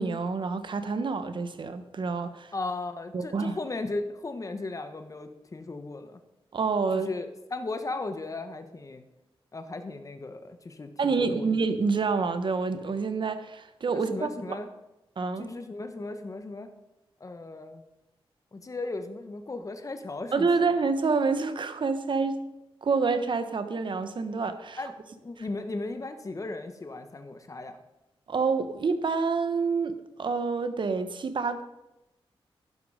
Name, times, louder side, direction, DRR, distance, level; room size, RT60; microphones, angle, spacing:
voice 1, 0.0-2.5 3.1-3.6 6.5-7.1 11.0-14.6 15.2-15.6 20.3-22.5 22.8-24.8 28.3-29.9 30.2-31.6, right 4 dB, 55° right, 10 dB, 1.2 m, -27 dB
voice 2, 2.5-6.2 6.9-9.0 9.5-11.5 13.9-14.7 15.4-16.7 17.2-17.8 18.5-20.5 24.8-24.9 25.2-27.8, left 2 dB, 35° left, 8 dB, 1.4 m, -36 dB
11.5 x 11.0 x 5.0 m, 0.96 s
wide cardioid pair, 95°, 10 cm